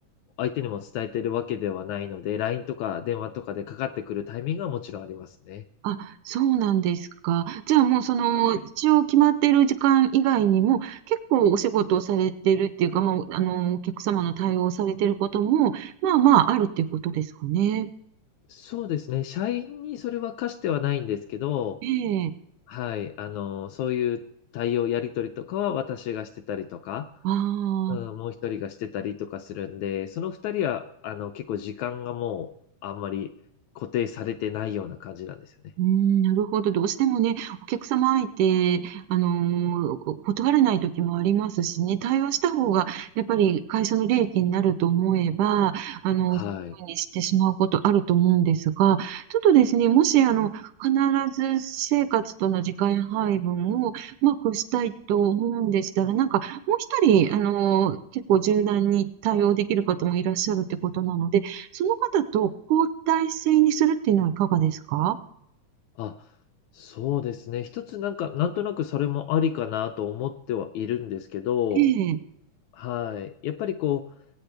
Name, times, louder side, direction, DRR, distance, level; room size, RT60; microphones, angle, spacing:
voice 1, 0.4-5.6 8.3-8.6 18.5-21.8 22.7-24.2 24.5-27.1 27.9-32.5 32.8-33.3 33.7-35.5 46.3-46.7 66.0-66.2 66.7-71.9 72.7-74.1, left 10 dB, 80° left, 7 dB, 1.7 m, -30 dB
voice 2, 5.8-17.9 21.8-22.3 27.2-28.0 35.8-46.4 46.8-65.2 71.8-72.2, right 10 dB, 80° right, 12 dB, 2.1 m, -23 dB
21.5 x 8.6 x 3.4 m, 0.77 s
omnidirectional pair, 3.7 m